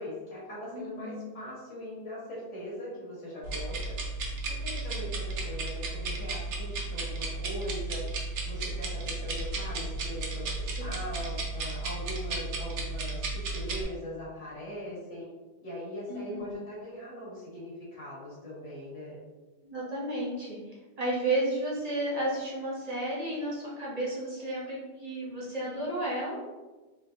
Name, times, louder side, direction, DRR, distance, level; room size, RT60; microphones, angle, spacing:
voice 1, 0.0-8.0 8.4-15.3 15.6-19.2, left 1 dB, 90° left, -6 dB, 1.9 m, -41 dB
voice 2, 0.7-1.3 16.1-16.6 19.6-26.5, right 1 dB, 35° right, -6 dB, 1.1 m, -33 dB
sound 1, 3.4-13.8, right 3 dB, 75° right, 1.0 m, -34 dB
3.8 x 3.4 x 2.8 m, 1.2 s
omnidirectional pair, 1.2 m